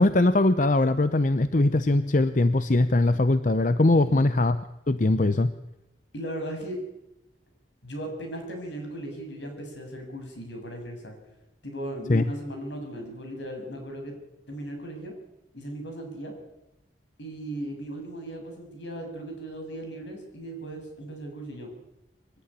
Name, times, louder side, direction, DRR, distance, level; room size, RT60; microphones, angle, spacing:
voice 1, 0.0-4.6 4.9-5.5 12.1-12.2, left 2 dB, 45° left, 12 dB, 0.7 m, -21 dB
voice 2, 6.1-6.8 7.8-11.2 11.6-14.2 14.5-15.2 15.5-16.3 17.2-21.7, right 1 dB, 75° left, 3 dB, 6.7 m, -37 dB
25.0 x 12.0 x 9.9 m, 0.88 s
head